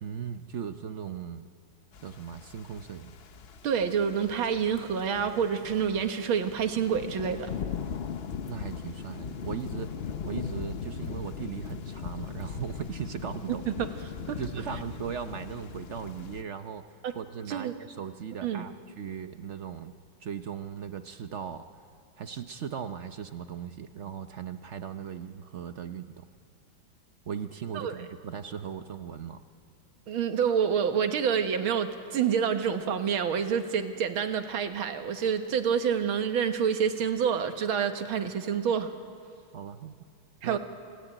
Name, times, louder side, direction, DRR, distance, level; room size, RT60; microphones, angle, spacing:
voice 1, 0.0-1.5 2.0-3.1 8.5-13.6 14.4-16.8 17.1-19.9 20.2-21.6 22.2-26.2 27.3-29.4 39.5-40.0 40.4-40.6, right 7 dB, 65° right, 8 dB, 0.7 m, -38 dB
sound 1, 1.9-16.4, left 7 dB, 80° left, 0.5 m, -39 dB
voice 2, 3.6-7.5 14.3-14.4 17.0-17.1 17.5-17.7 18.4-18.7 27.7-28.0 30.1-38.9 40.4-40.6, right 7 dB, 80° right, 7 dB, 2.2 m, -27 dB
28.5 x 17.0 x 9.0 m, 2.3 s
omnidirectional pair, 2.2 m